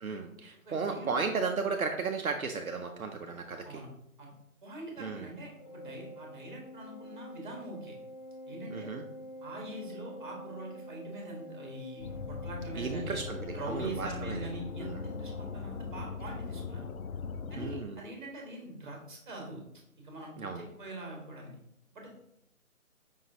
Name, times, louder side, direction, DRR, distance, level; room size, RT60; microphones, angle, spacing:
voice 1, 0.0-3.8 5.0-5.3 8.7-9.0 12.7-14.5 14.8-15.0 17.6-18.0 20.4-20.7, right 4 dB, 75° right, 4 dB, 0.6 m, -35 dB
voice 2, 0.6-1.2 3.6-3.9 4.2-4.3 4.6-7.9 8.5-8.9 9.4-13.2 13.5-16.8 17.5-19.6 20.0-21.5 21.9-22.1, right 1 dB, 35° right, -1 dB, 1.5 m, -43 dB
Organ, 5.6-16.3, equal, 60° left, 1.9 m, -47 dB
sound 1, 12.0-17.8, left 5 dB, 80° left, 0.5 m, -40 dB
5.2 x 3.7 x 2.7 m, 0.76 s
figure-of-eight pair, 150°, 43 cm